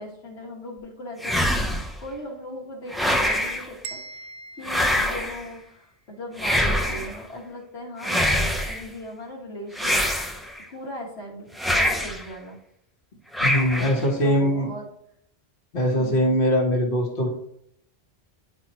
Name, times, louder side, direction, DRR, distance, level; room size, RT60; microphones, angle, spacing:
voice 1, 0.0-1.7 2.0-4.3 4.6-10.1 10.7-12.6 13.8-14.8 15.9-16.4, equal, 80° left, -1 dB, 1.6 m, -38 dB
sound 1, 1.2-2.0 2.9-3.7 4.6-5.4 6.4-7.2 8.0-8.8 9.8-10.6 11.6-12.2 13.3-14.0, equal, ahead, 0.4 m, -24 dB
sound 2, 3.8-5.8, right 4 dB, 65° right, 0.8 m, -42 dB
voice 2, 13.4-14.7 15.7-17.3, equal, 55° left, -1 dB, 1.4 m, -22 dB
9.6 x 4.5 x 3.0 m, 0.73 s
omnidirectional pair, 1.1 m